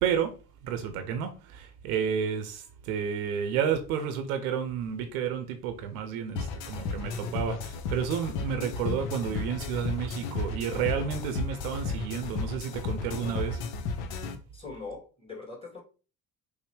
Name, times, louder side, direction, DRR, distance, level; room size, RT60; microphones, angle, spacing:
voice 1, 0.0-13.6, right 8 dB, 65° right, 0.8 m, -31 dB
sound 1, 6.4-14.4, left 4 dB, 60° left, 0.7 m, -34 dB
voice 2, 14.5-15.8, left 4 dB, 10° left, 2.3 m, -41 dB
5.4 x 2.1 x 4.6 m
figure-of-eight pair, 50°, 46 cm